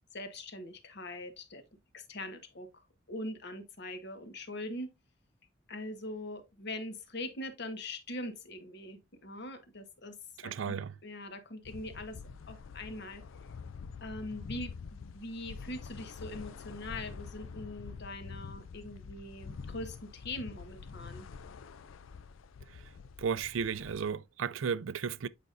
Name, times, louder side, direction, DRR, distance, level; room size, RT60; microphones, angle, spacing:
voice 1, 0.1-1.6 1.9-2.7 3.1-4.9 5.7-10.2 10.4-10.8 11.0-12.2 12.5-13.2 14.0-21.3, left 1 dB, 60° left, 1.3 m, -42 dB
voice 2, 10.4-10.9 22.7-22.8 23.2-25.3, right 6 dB, 75° right, 0.4 m, -34 dB
sound 1, 11.6-24.1, left 5 dB, 90° left, 0.4 m, -46 dB
8.3 x 5.1 x 2.6 m
head